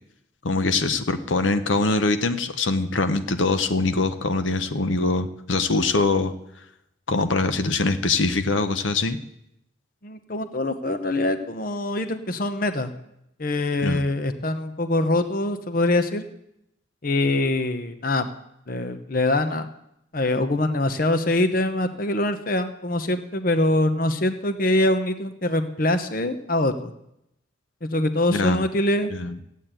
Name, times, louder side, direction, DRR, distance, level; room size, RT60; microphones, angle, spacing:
voice 1, 0.4-6.3 7.1-9.2 13.8-14.0 28.3-28.6 29.1-29.4, left 3 dB, 85° left, 9 dB, 0.9 m, -23 dB
voice 2, 10.0-12.9 13.4-16.2 17.0-18.3 18.7-19.7 20.1-26.9 27.8-29.1, left 1 dB, 45° left, 9 dB, 0.9 m, -24 dB
15.0 x 8.4 x 9.0 m, 0.81 s
head